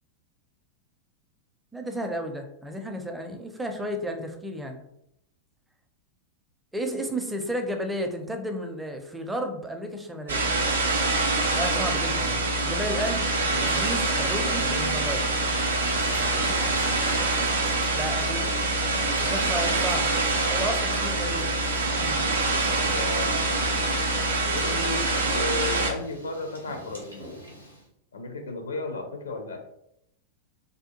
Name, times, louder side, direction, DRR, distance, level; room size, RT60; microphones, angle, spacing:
voice 1, 1.7-4.8 6.7-10.5 11.5-13.3 13.5-15.3 17.9-18.4 19.3-20.1 20.5-21.5 21.9-22.2, equal, 10° right, 4 dB, 0.5 m, -32 dB
sound 1, 10.3-25.9, right 2 dB, 70° right, 0.4 m, -25 dB
Boiling, 13.3-27.8, equal, 90° left, 0.9 m, -44 dB
voice 2, 16.1-16.6 19.2-19.7 20.0-20.6 22.1-22.4 22.6-23.5 24.5-27.3 28.1-29.6, left 3 dB, 70° left, 5 dB, 0.5 m, -35 dB
3.4 x 2.2 x 2.9 m, 0.77 s
figure-of-eight pair, 90°, 0 cm